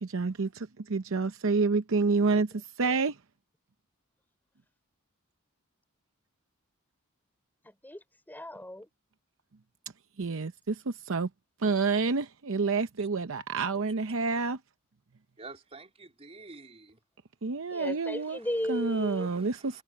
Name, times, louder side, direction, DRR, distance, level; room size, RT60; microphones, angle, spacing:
voice 1, 0.0-3.2 10.2-11.3 11.6-14.6 17.4-18.4 18.7-19.8, right 4 dB, 65° right, 0.7 m, -28 dB
voice 2, 7.8-8.9 17.7-19.3, left 1 dB, 10° left, 4.8 m, -35 dB
voice 3, 15.4-17.0 18.4-18.5 19.2-19.8, right 3 dB, 30° right, 3.7 m, -49 dB
head